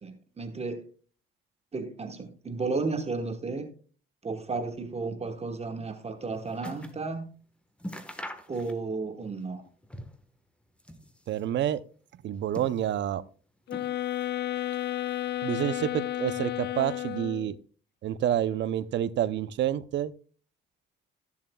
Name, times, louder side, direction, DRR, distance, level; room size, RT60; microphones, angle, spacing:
voice 1, 0.0-0.9 1.7-3.7 4.2-7.3 8.5-9.6, right 3 dB, 30° right, 1.2 m, -33 dB
sound 1, 5.9-7.1 7.4-7.5 7.8-9.1 9.4-10.3 10.7-11.5 12.2-13.2 13.7-14.4 14.7-15.4 16.1-16.2, equal, 5° left, 1.3 m, -44 dB
voice 2, 11.3-11.8 12.2-13.2 15.4-17.6 18.0-20.1, right 11 dB, 65° right, 0.6 m, -28 dB
sound 2, 13.7-17.6, left 13 dB, 60° left, 0.5 m, -32 dB
14.0 x 7.2 x 2.3 m
cardioid pair, 90°, 20 cm